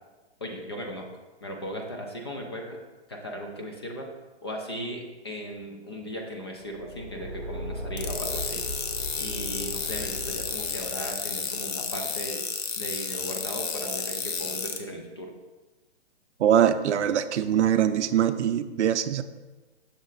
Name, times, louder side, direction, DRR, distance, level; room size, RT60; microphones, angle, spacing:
voice 1, 0.4-1.1 1.4-2.8 3.1-4.1 4.4-8.6 9.2-12.4 12.8-15.3, equal, 25° left, 1 dB, 0.3 m, -37 dB
Car / Engine, 6.6-11.1, equal, 5° left, 1.0 m, -37 dB
sound 1, 8.0-14.8, left 6 dB, 60° left, 0.8 m, -32 dB
voice 2, 16.4-19.2, right 10 dB, 75° right, 11 dB, 0.5 m, -23 dB
6.4 x 4.0 x 3.9 m, 1.2 s
hypercardioid pair, 150°, 35 cm